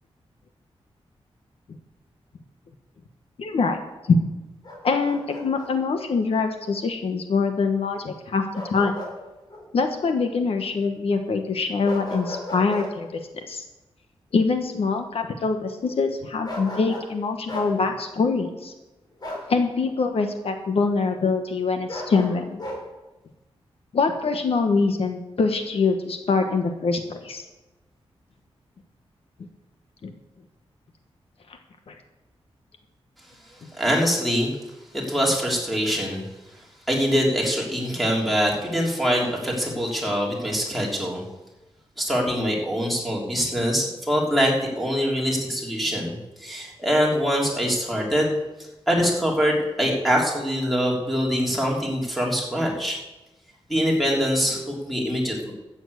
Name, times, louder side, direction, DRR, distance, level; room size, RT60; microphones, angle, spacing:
voice 1, 3.4-3.8 4.1-4.2 4.8-8.4 8.7-9.0 9.7-13.2 13.5-13.6 14.3-18.7 19.5-22.6 23.9-27.4 30.0-30.1 31.9-32.0, left 4 dB, 70° left, 6 dB, 1.2 m, -24 dB
Bark, 4.6-5.7 8.5-9.2 9.5-9.7 11.8-12.9 16.4-17.1 17.5-17.7 19.2-19.5 21.9-22.8, left 1 dB, 40° left, 4.2 m, -35 dB
voice 2, 33.7-34.5 34.9-36.2 36.9-41.2 42.0-48.4 48.9-53.0 53.7-55.5, equal, ahead, -3 dB, 3.2 m, -24 dB
13.5 x 7.2 x 8.2 m, 1.1 s
wide cardioid pair, 125°, 10 cm